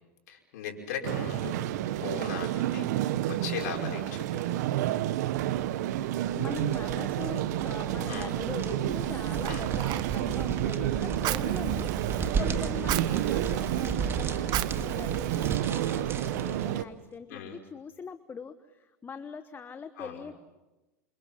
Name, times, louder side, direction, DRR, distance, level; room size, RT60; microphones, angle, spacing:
voice 1, 0.3-1.6 2.0-2.9 3.3-4.4 8.1-8.3 9.5-9.6 17.3-17.6 20.0-20.2, left 7 dB, 70° left, 0 dB, 5.5 m, -38 dB
sound 1, 1.0-16.8, right 13 dB, 70° right, 1.1 m, -30 dB
voice 2, 2.0-2.5 3.8-4.0 6.3-20.3, left 6 dB, 20° left, 10 dB, 1.2 m, -42 dB
sound 2, 6.2-16.8, right 5 dB, 25° right, 2.3 m, -36 dB
Fire, 8.9-16.1, right 15 dB, 45° right, 1.1 m, -38 dB
28.0 x 27.0 x 5.8 m, 1.1 s
hypercardioid pair, 100°, 10 cm